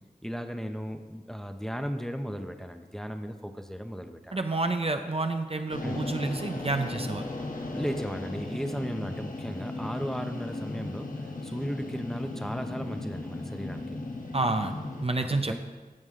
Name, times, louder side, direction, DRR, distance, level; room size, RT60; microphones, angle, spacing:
voice 1, 0.2-4.6 5.8-6.0 7.7-14.0 15.2-15.6, equal, 5° left, 6 dB, 0.9 m, -36 dB
voice 2, 4.3-7.2 14.3-14.7 15.0-15.6, right 2 dB, 40° right, 6 dB, 0.7 m, -29 dB
sound 1, 5.7-15.0, left 2 dB, 60° left, 1.3 m, -36 dB
16.0 x 6.1 x 3.8 m, 1.3 s
wide cardioid pair, 45°, 16 cm